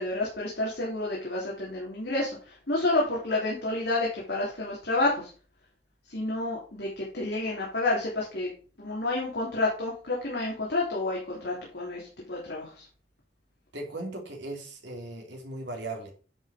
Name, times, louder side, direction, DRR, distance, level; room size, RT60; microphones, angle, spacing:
voice 1, 0.0-5.3 6.1-8.5 8.8-12.9, left 2 dB, 70° left, -4 dB, 3.1 m, -29 dB
voice 2, 13.7-16.1, right 2 dB, 85° right, 2 dB, 3.0 m, -37 dB
10.0 x 5.6 x 5.0 m, 0.39 s
head